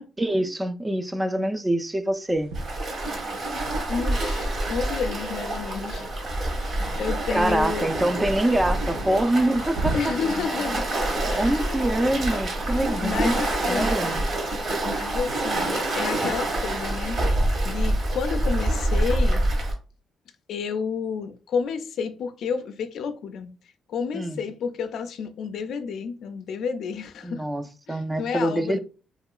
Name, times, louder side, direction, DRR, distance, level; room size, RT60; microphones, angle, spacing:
voice 1, 0.2-2.5 7.3-10.1 11.4-13.3 13.7-14.2 24.1-24.4 27.2-28.8, right 1 dB, 15° right, 0.4 m, -25 dB
sound 1, 2.3-3.6 5.4-6.9 7.7-7.8 8.4-8.5 9.6-10.4, right 2 dB, 85° right, 0.4 m, -35 dB
Waves surf, 2.5-19.7, right 1 dB, 55° right, 1.2 m, -26 dB
voice 2, 3.9-6.1 6.5-7.9 9.9-10.9 11.3-11.9 13.0-14.0 14.8-19.4 20.5-23.5 23.9-27.5 27.9-28.8, left 6 dB, 75° left, 0.3 m, -31 dB
2.9 x 2.8 x 2.3 m
cardioid pair, 90°, 0 cm